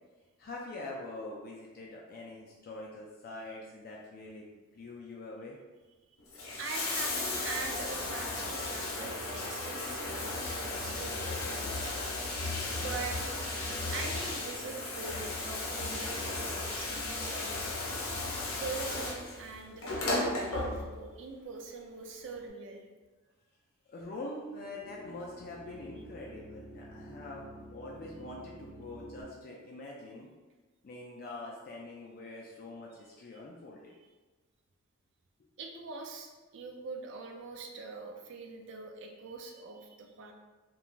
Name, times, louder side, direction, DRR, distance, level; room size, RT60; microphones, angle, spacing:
voice 1, 0.4-5.6 23.8-30.3 30.8-33.9, left 2 dB, 45° left, -3 dB, 0.3 m, -44 dB
Bathtub (filling or washing), 6.2-21.2 22.3-22.4, left 2 dB, 85° left, 0.6 m, -35 dB
voice 2, 6.5-12.0 12.8-13.2 13.9-17.6 18.6-22.8 35.6-40.3, right 4 dB, 60° right, 3 dB, 0.4 m, -43 dB
sound 1, 24.4-29.2, equal, 75° right, 0.9 m, -50 dB
2.4 x 2.2 x 3.0 m, 1.2 s
head